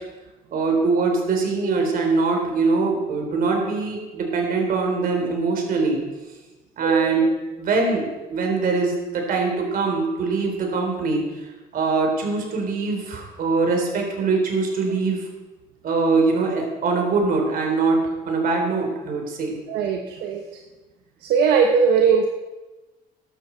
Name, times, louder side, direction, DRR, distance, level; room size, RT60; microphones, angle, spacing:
voice 1, 0.5-6.0 6.8-8.0 8.3-11.5 11.7-15.2 15.8-19.6, right 4 dB, 55° right, 2 dB, 3.8 m, -22 dB
voice 2, 6.8-7.2 19.7-20.4 21.2-22.3, right 6 dB, 80° right, 3 dB, 1.1 m, -19 dB
13.5 x 11.5 x 4.5 m, 1.2 s
cardioid pair, 110°, 17 cm